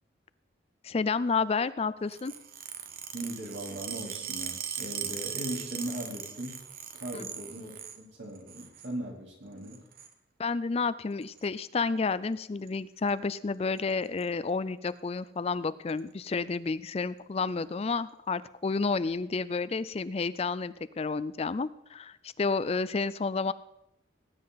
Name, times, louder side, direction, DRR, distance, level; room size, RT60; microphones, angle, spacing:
voice 1, 0.8-2.3 7.1-7.3 10.4-23.5, left 4 dB, 35° left, 16 dB, 0.4 m, -30 dB
sound 1, 2.1-8.0 8.3-8.9 9.6-10.1 11.2-11.4 12.4-12.7 13.0-13.1 13.4-13.5 13.8-14.2 14.9-15.0 15.9-16.0, right 8 dB, 50° right, 1.1 m, -39 dB
voice 2, 3.1-6.6 6.9-9.8, right 1 dB, 80° right, -1 dB, 3.8 m, -39 dB
18.5 x 9.6 x 4.1 m, 0.84 s
head